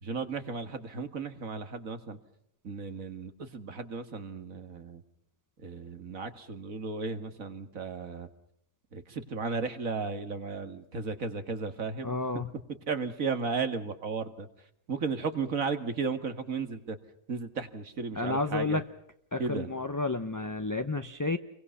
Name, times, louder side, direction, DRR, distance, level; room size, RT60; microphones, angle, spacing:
voice 1, 0.0-2.2 2.6-5.0 5.6-8.3 8.9-12.4 12.9-14.5 14.9-17.0 17.3-18.8 19.4-19.7, right 4 dB, 85° right, 9 dB, 2.3 m, -34 dB
voice 2, 12.0-12.5 18.2-18.8 19.3-21.4, left 3 dB, 15° left, 8 dB, 0.8 m, -31 dB
29.5 x 23.0 x 5.6 m, 0.73 s
omnidirectional pair, 1.4 m